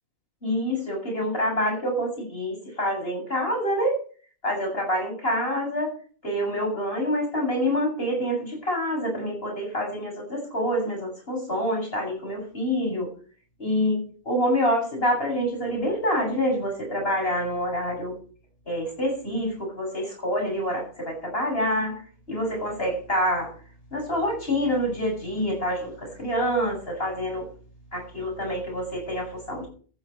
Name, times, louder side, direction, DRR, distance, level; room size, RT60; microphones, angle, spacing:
voice 1, 0.4-4.0 4.4-5.9 6.2-13.1 13.6-18.1 18.7-21.9 22.3-23.5 23.9-27.4 27.9-29.7, equal, 65° left, 1 dB, 8.3 m, -27 dB
12.0 x 10.5 x 8.1 m, 0.43 s
omnidirectional pair, 1.1 m